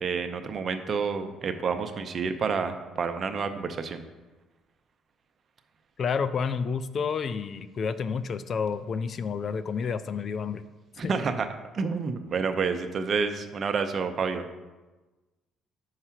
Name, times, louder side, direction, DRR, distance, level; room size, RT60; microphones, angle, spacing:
voice 1, 0.0-4.0 11.0-11.5 11.7-14.5, right 5 dB, 45° right, 8 dB, 0.7 m, -29 dB
voice 2, 6.0-10.6 11.0-11.1, left 6 dB, 50° left, 14 dB, 0.4 m, -30 dB
5.6 x 4.8 x 5.7 m, 1.2 s
cardioid pair, 90°, 0 cm